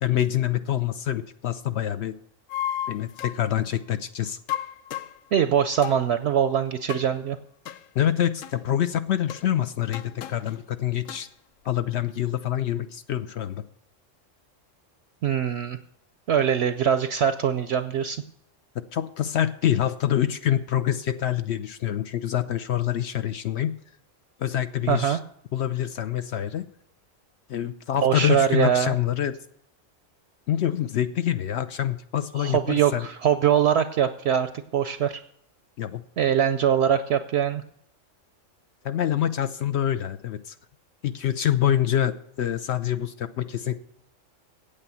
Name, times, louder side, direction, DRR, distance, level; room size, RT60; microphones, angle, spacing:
voice 1, 0.0-2.2 2.9-4.4 7.9-11.3 11.6-13.6 18.8-23.7 24.4-25.2 25.5-26.6 27.5-29.3 30.5-33.1 35.8-36.0 38.8-40.5 41.0-43.8, left 11 dB, 65° left, 11 dB, 0.8 m, -26 dB
sound 1, 2.5-3.5 4.5-5.2 5.8-6.0 6.9-7.1 7.7-7.8 8.4-8.6 9.3-9.4 9.9-10.6 11.1-11.2, left 11 dB, 85° left, 1.0 m, -33 dB
voice 2, 5.3-7.4 15.2-15.8 16.3-18.2 24.9-25.2 28.0-29.0 32.4-35.2 36.2-37.6, right 9 dB, 65° right, 11 dB, 0.7 m, -23 dB
8.8 x 8.3 x 7.0 m, 0.71 s
omnidirectional pair, 1.3 m